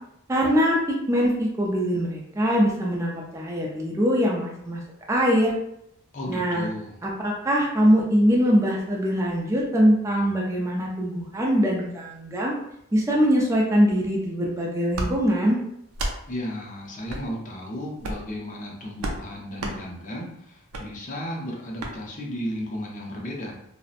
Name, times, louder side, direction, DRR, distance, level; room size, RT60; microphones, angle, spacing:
voice 1, 0.3-4.8 5.1-5.6 6.3-6.6 7.0-12.5 12.9-15.6, equal, 15° right, -3 dB, 0.3 m, -22 dB
voice 2, 6.1-7.0 16.3-23.6, equal, 35° left, -2 dB, 0.6 m, -34 dB
sound 1, 14.9-15.1 15.9-16.2 17.1-17.3 18.0-18.3 19.0-19.2 19.6-19.8 20.7-20.9 21.8-21.9, right 1 dB, 85° right, 0.4 m, -30 dB
2.7 x 2.0 x 2.4 m, 0.77 s
head